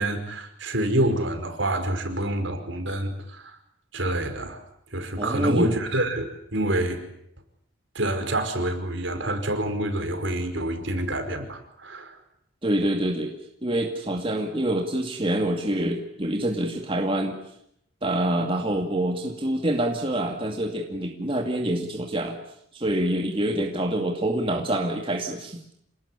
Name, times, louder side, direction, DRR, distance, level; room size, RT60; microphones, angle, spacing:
voice 1, 0.0-3.6 3.9-4.6 4.9-7.0 7.9-12.2, right 1 dB, 65° right, 7 dB, 5.1 m, -27 dB
voice 2, 5.2-5.7 12.6-17.4 18.0-22.4 22.7-25.6, right 1 dB, 25° right, 2 dB, 2.4 m, -26 dB
28.0 x 19.5 x 10.0 m, 0.74 s
head